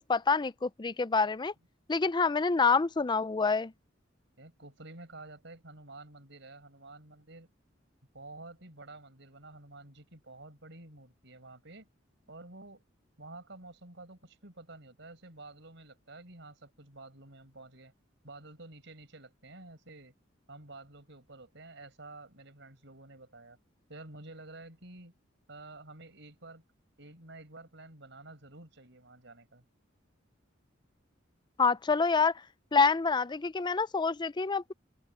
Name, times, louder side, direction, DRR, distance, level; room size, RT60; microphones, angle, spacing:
voice 1, 0.1-1.5 1.9-3.7 31.6-32.3 32.7-34.7, left 4 dB, 25° left, 0.5 m, -27 dB
voice 2, 4.4-7.5 8.1-11.9 12.3-12.8 13.2-17.9 18.2-20.1 20.5-23.6 23.9-25.1 25.5-26.6 27.0-29.6, right 2 dB, 70° right, 6.1 m, -50 dB
open air
head